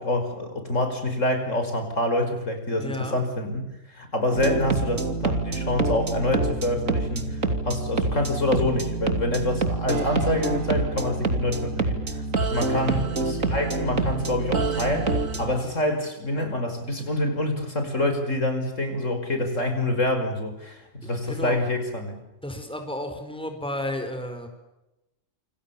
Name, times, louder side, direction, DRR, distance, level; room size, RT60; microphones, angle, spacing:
voice 1, 0.0-3.6 3.9-12.2 12.5-22.1, left 1 dB, 70° left, 6 dB, 5.7 m, -26 dB
voice 2, 2.8-3.2 12.7-12.9 21.3-21.6 22.4-24.5, left 1 dB, 5° left, 5 dB, 4.9 m, -32 dB
sound 1, 4.3-15.6, right 3 dB, 75° right, 3.2 m, -27 dB
28.5 x 26.5 x 7.2 m, 0.94 s
omnidirectional pair, 1.4 m